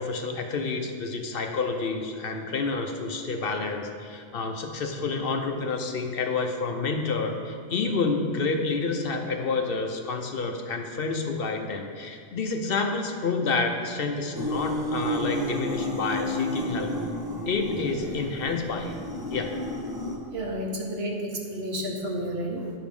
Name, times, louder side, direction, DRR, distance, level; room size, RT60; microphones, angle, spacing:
voice 1, 0.0-16.9 17.4-19.0 19.3-19.5, left 4 dB, 60° left, 4 dB, 0.9 m, -29 dB
sound 1, 14.3-20.2, left 1 dB, 5° right, 0.9 m, -31 dB
voice 2, 20.3-22.7, equal, 65° right, -1 dB, 1.4 m, -31 dB
10.0 x 5.0 x 5.3 m, 2.1 s
omnidirectional pair, 1.1 m